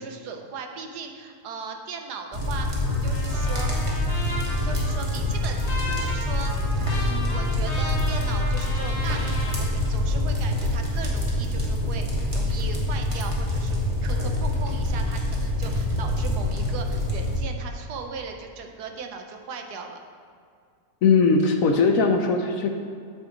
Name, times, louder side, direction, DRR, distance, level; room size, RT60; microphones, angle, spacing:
voice 1, 0.0-3.7 4.6-20.0, right 5 dB, 80° right, 4 dB, 1.4 m, -38 dB
sound 1, 2.3-17.4, left 1 dB, 20° right, 1.5 m, -25 dB
Trumpet, 2.8-9.6, left 2 dB, 25° left, 1.1 m, -36 dB
voice 2, 21.0-22.7, left 4 dB, 65° left, 4 dB, 1.0 m, -19 dB
9.0 x 7.0 x 3.9 m, 2.2 s
omnidirectional pair, 1.7 m